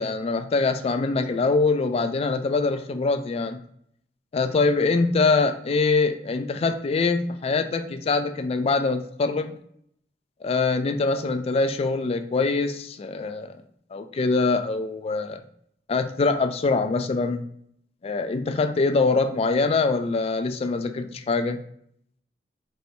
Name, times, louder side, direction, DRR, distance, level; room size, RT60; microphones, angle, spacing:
voice 1, 0.0-3.6 4.3-9.6 10.4-13.5 13.9-15.4 15.9-17.5 18.0-21.6, left 3 dB, 35° left, 8 dB, 0.3 m, -24 dB
4.3 x 2.7 x 3.2 m, 0.67 s
head